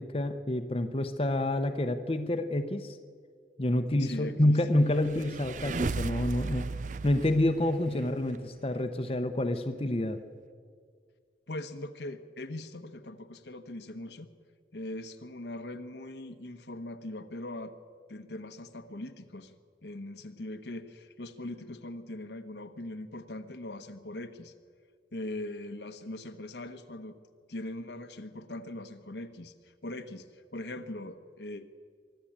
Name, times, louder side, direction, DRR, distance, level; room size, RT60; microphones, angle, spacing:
voice 1, 0.0-3.0 3.6-6.7 7.0-10.2, left 1 dB, 30° left, 7 dB, 0.8 m, -28 dB
voice 2, 4.0-4.5 11.5-14.3 14.7-17.7 18.1-24.5 25.1-27.2 27.5-31.7, left 1 dB, 75° left, 8 dB, 1.2 m, -41 dB
sound 1, 4.8-8.4, right 3 dB, 45° right, 0.5 m, -35 dB
24.0 x 13.0 x 8.8 m, 2.1 s
head